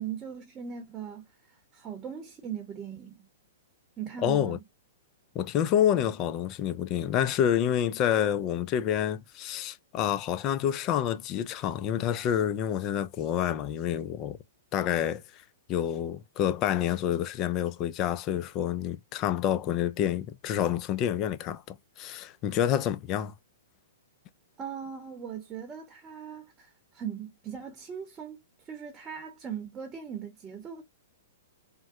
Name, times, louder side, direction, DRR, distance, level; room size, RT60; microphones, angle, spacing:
voice 1, 0.0-3.3 4.0-4.6 24.6-30.8, right 8 dB, 20° right, 0.8 m, -39 dB
voice 2, 4.2-4.6 5.3-14.4 14.7-15.4 15.7-23.3, left 10 dB, 35° left, 0.4 m, -28 dB
3.6 x 2.1 x 2.6 m
hypercardioid pair, 125°, 0 cm